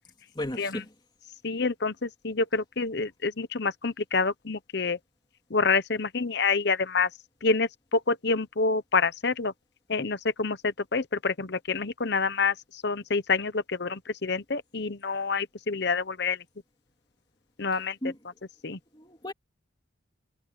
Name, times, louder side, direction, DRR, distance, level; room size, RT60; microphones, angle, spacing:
voice 1, 0.3-0.9 18.0-18.1 19.0-19.3, left 1 dB, 20° left, 3.4 m, -34 dB
voice 2, 1.4-5.0 5.5-7.1 7.4-9.5 9.9-16.4 17.6-18.1 18.6-18.8, left 4 dB, 55° left, 0.9 m, -27 dB
head